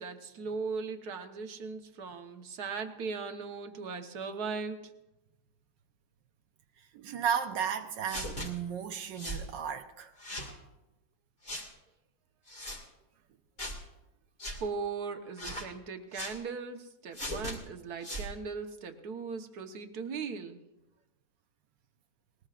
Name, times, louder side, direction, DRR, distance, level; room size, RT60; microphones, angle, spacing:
voice 1, 0.0-4.8 14.6-20.6, right 5 dB, 60° right, 1.6 m, -38 dB
voice 2, 6.9-10.1, right 8 dB, 75° right, 1.4 m, -34 dB
sound 1, 8.1-8.5 9.2-9.4 10.2-10.5 11.4-11.7 12.5-12.8 13.6-13.8 14.4-14.6 15.4-15.7 16.1-16.4 17.1-17.6 18.0-18.3, equal, 30° left, 2.3 m, -38 dB
20.0 x 19.5 x 2.5 m
omnidirectional pair, 2.0 m